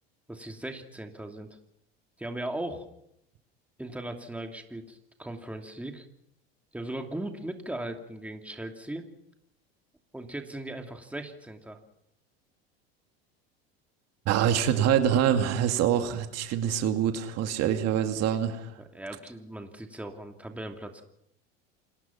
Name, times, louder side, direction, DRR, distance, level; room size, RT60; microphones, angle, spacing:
voice 1, 0.3-1.5 2.2-2.9 3.8-6.1 6.7-9.1 10.1-11.8 18.8-21.0, right 1 dB, 5° right, 4 dB, 2.8 m, -38 dB
voice 2, 14.3-18.7, right 9 dB, 55° right, 6 dB, 2.5 m, -25 dB
28.5 x 19.5 x 6.0 m, 0.78 s
hypercardioid pair, 95°, 31 cm